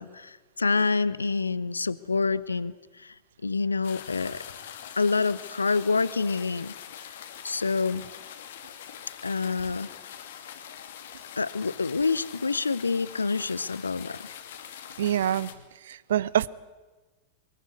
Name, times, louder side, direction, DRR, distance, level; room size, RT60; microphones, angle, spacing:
voice 1, 0.0-3.1 3.4-4.4 5.0-6.7 7.4-8.0 9.2-9.9 11.4-14.2, left 4 dB, 75° left, 19 dB, 0.8 m, -27 dB
sound 1, 3.8-15.5, left 9 dB, 60° left, 2.3 m, -43 dB
voice 2, 15.0-15.5 15.8-16.5, right 11 dB, 60° right, 22 dB, 0.8 m, -25 dB
24.0 x 22.0 x 9.6 m, 1.2 s
figure-of-eight pair, 90°, 0 cm